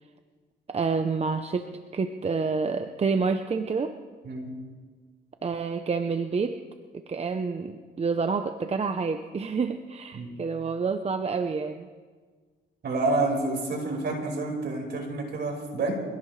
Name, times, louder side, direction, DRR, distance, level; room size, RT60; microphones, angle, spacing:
voice 1, 0.7-4.0 5.4-6.6 6.9-11.9, right 4 dB, 30° right, 7 dB, 0.8 m, -28 dB
voice 2, 12.8-15.9, right 2 dB, 60° right, 0 dB, 5.3 m, -28 dB
25.0 x 17.0 x 3.3 m, 1.5 s
cardioid pair, 90°, 20 cm